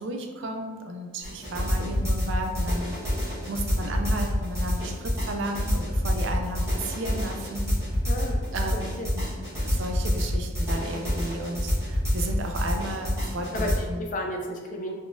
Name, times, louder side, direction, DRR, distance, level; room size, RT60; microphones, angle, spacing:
voice 1, 0.0-3.0 3.5-7.7 8.5-9.2 9.6-14.0, right 1 dB, 65° right, 3 dB, 0.4 m, -33 dB
sound 1, 1.2-13.7, equal, 15° right, 1.0 m, -27 dB
voice 2, 8.0-8.4 9.0-9.1 13.5-14.9, equal, 40° left, 1 dB, 0.4 m, -32 dB
3.7 x 2.3 x 2.5 m, 1.5 s
head